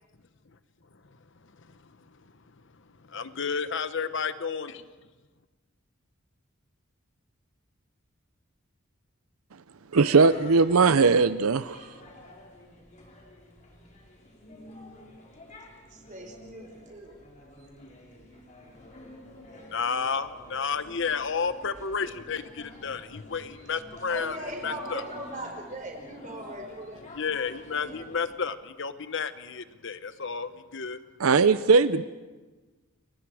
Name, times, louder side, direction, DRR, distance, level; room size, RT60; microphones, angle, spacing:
voice 1, 1.4-4.8 19.6-25.0 27.1-31.0, left 5 dB, 60° left, 12 dB, 1.0 m, -32 dB
sound 1, 9.9-28.4, left 1 dB, 35° left, 4.4 m, -49 dB
voice 2, 9.9-11.8 31.2-32.0, right 4 dB, 85° right, 14 dB, 0.6 m, -19 dB
voice 3, 15.9-17.2 24.1-27.0, right 1 dB, 35° right, 2 dB, 4.8 m, -39 dB
29.5 x 23.0 x 4.9 m, 1.3 s
head